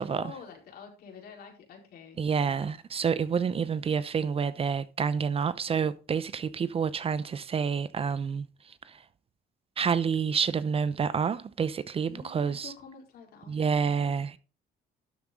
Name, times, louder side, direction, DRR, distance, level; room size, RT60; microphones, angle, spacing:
voice 1, 0.1-2.8 3.5-4.3 12.1-14.1, left 6 dB, 65° left, 4.5 m, -49 dB
voice 2, 2.2-9.0 9.8-12.7 13.5-14.4, right 6 dB, 35° right, 0.7 m, -28 dB
12.5 x 7.2 x 3.9 m
cardioid pair, 110°, 17 cm